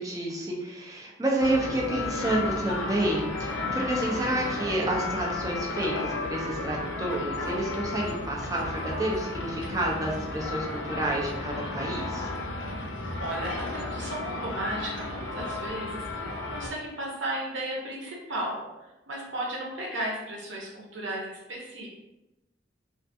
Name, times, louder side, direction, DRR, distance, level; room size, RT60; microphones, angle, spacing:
voice 1, 0.0-12.3, right 1 dB, 20° right, -2 dB, 0.4 m, -29 dB
sound 1, 1.4-16.7, left 2 dB, 90° left, 0.5 m, -33 dB
voice 2, 13.2-21.9, right 1 dB, 85° right, -2 dB, 0.7 m, -35 dB
2.4 x 2.4 x 2.6 m, 0.98 s
head